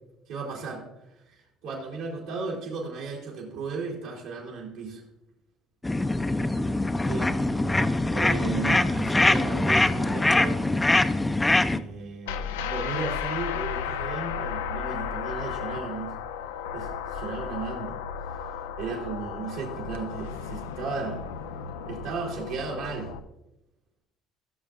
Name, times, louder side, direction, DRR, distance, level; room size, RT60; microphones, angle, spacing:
voice 1, 0.3-0.8 1.3-5.0 7.0-7.3 8.1-10.6 11.7-16.1 16.7-18.0 18.8-21.2 21.9-23.1, right 4 dB, 80° right, -5 dB, 3.2 m, -35 dB
sound 1, 5.8-11.8, left 2 dB, 15° left, 0.5 m, -23 dB
sound 2, 12.3-23.2, left 7 dB, 90° left, 0.4 m, -34 dB
17.0 x 6.8 x 2.5 m, 0.92 s
hypercardioid pair, 70°, 0 cm